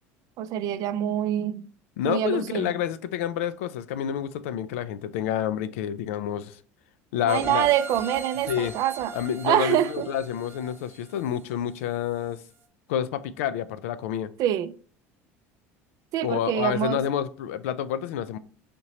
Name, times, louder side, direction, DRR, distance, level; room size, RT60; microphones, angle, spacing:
voice 1, 0.4-1.6 2.0-2.7 7.2-9.1 9.4-10.1 14.4-14.7 16.1-17.0, right 11 dB, 55° right, 0.4 m, -25 dB
voice 2, 2.0-6.6 7.1-7.7 8.5-8.7 9.1-12.4 12.9-14.3 16.2-18.4, left 10 dB, 80° left, 0.3 m, -28 dB
sound 1, 7.3-12.0 12.4-12.5, right 4 dB, 35° right, 1.0 m, -40 dB
5.0 x 2.9 x 2.8 m
supercardioid pair, 90°, 7 cm